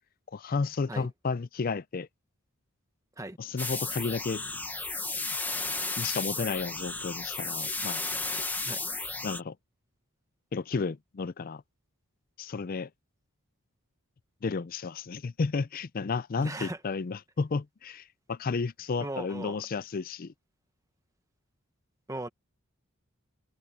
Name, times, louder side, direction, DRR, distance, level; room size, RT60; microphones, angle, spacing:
voice 1, 0.3-2.1 3.4-4.4 6.0-8.0 9.2-9.6 10.5-11.6 12.4-12.9 14.4-20.3, left 4 dB, 40° left, 0.4 m, -32 dB
sound 1, 3.6-9.4, left 3 dB, 10° left, 1.1 m, -33 dB
voice 2, 16.4-16.8 19.0-19.6 22.1-22.3, right 2 dB, 15° right, 1.3 m, -37 dB
head